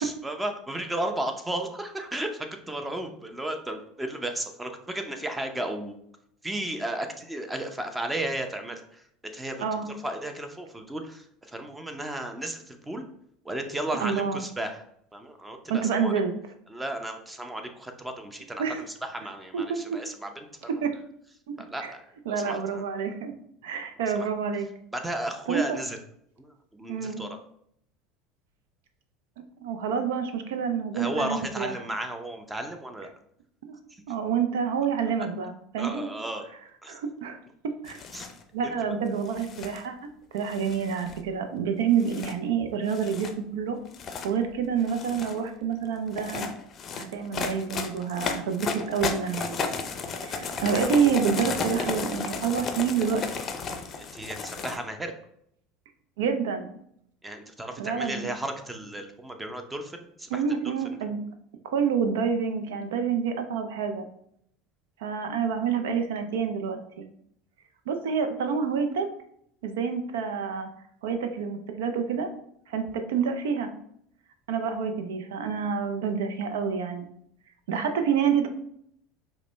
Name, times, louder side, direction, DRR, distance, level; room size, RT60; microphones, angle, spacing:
voice 1, 0.0-5.9 6.4-9.0 9.3-13.0 13.4-14.8 15.1-16.1 16.7-18.6 19.0-20.9 21.6-22.0 22.3-22.8 24.9-26.0 26.4-27.4 30.9-33.1 33.9-34.0 35.8-36.5 36.8-37.0 38.1-38.3 38.6-38.9 54.0-55.1 57.2-60.8, right 1 dB, 10° right, 6 dB, 0.6 m, -34 dB
voice 2, 14.0-14.4 15.7-16.3 18.6-18.8 19.5-20.0 20.8-20.9 21.5-21.6 21.8-21.9 22.3-23.3 23.6-24.7 25.5-25.8 26.9-27.2 29.6-31.7 33.6-33.7 34.1-36.1 36.9-37.4 37.8-38.0 38.5-43.8 44.2-46.5 46.9-49.7 50.2-53.2 56.2-56.7 57.8-58.3 60.3-61.2 61.6-64.1 65.0-66.8 67.9-69.1 69.6-70.7 71.0-72.3 72.7-73.7 74.5-77.1 77.7-78.5, right 6 dB, 80° right, 7 dB, 0.5 m, -28 dB
sound 1, 37.9-38.4 39.3-39.8 40.5-41.3 42.0-42.3 42.9-43.3 43.9-44.3 44.8-45.4 46.1-54.8, left 5 dB, 40° left, 0.5 m, -33 dB
4.8 x 2.1 x 3.3 m, 0.71 s
hypercardioid pair, 80°, 0 cm